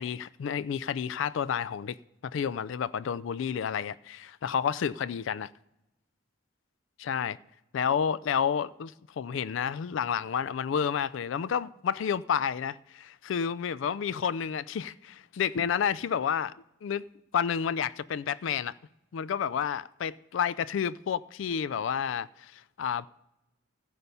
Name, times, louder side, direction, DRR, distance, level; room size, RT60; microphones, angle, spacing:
voice 1, 0.0-2.0 2.2-5.5 7.0-7.4 7.7-16.5 16.8-17.0 17.3-18.7 19.1-23.1, left 7 dB, 65° left, 0.3 m, -30 dB
15.5 x 6.8 x 5.5 m
head